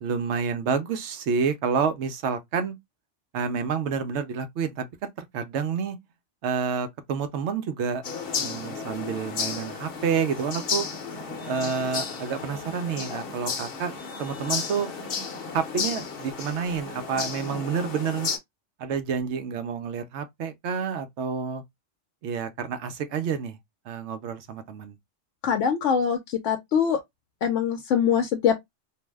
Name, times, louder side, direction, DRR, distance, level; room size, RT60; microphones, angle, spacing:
voice 1, 0.0-2.8 3.3-4.9 5.2-6.0 6.4-8.0 8.4-10.9 11.5-13.9 14.2-14.9 15.5-18.3 18.8-21.6 22.2-23.6 23.9-25.0, right 6 dB, 75° right, 0.8 m, -29 dB
sound 1, 8.0-18.4, left 5 dB, 55° left, 0.9 m, -33 dB
voice 2, 25.4-27.0 27.4-28.6, left 7 dB, 80° left, 0.9 m, -23 dB
2.5 x 2.0 x 3.3 m
omnidirectional pair, 1.2 m